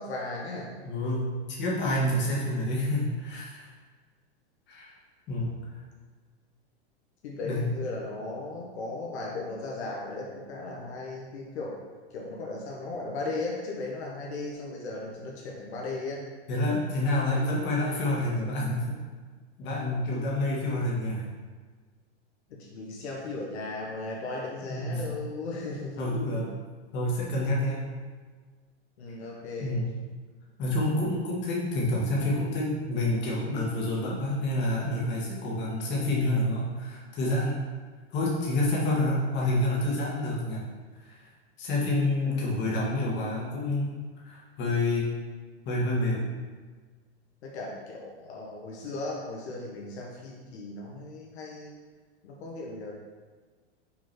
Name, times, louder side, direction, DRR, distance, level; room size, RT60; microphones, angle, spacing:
voice 1, 0.0-0.7 5.4-5.5 7.2-11.8 12.1-16.2 22.5-26.5 29.0-29.8 42.2-42.6 47.4-51.8 52.2-52.9, left 2 dB, 70° left, -2 dB, 1.3 m, -37 dB
voice 2, 0.8-3.7 4.7-4.9 5.3-5.7 7.4-7.7 16.5-19.0 19.6-21.3 24.6-25.2 26.0-26.5 26.9-28.0 29.6-30.1 30.6-37.7 38.1-40.6 41.1-41.2 41.6-45.2 45.7-46.4, left 1 dB, 30° left, -4 dB, 1.8 m, -28 dB
6.2 x 3.9 x 4.4 m, 1.5 s
supercardioid pair, 135°, 33 cm